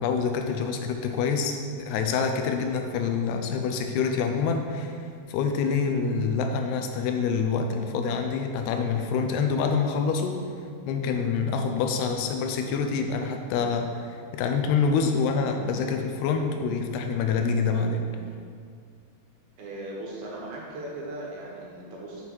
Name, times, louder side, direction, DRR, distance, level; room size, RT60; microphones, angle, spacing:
voice 1, 0.0-5.0 5.3-10.4 10.9-14.1 14.3-18.0, left 5 dB, 80° left, 5 dB, 2.7 m, -26 dB
voice 2, 19.6-22.3, right 1 dB, 70° right, -3 dB, 3.1 m, -38 dB
8.2 x 5.6 x 6.2 m, 2.2 s
omnidirectional pair, 4.8 m